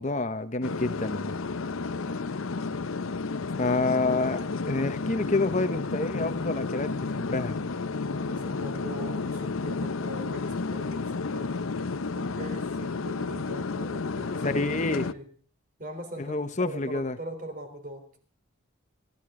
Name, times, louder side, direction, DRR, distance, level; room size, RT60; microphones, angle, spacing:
voice 1, 0.0-1.4 3.6-7.6 14.3-15.1 16.2-17.2, left 2 dB, 35° left, 1.0 m, -28 dB
sound 1, 0.6-15.1, left 4 dB, 90° left, 0.7 m, -32 dB
voice 2, 8.1-11.6 12.1-14.6 14.9-15.2 15.8-18.1, equal, 40° right, 3.9 m, -41 dB
26.5 x 13.0 x 3.8 m
head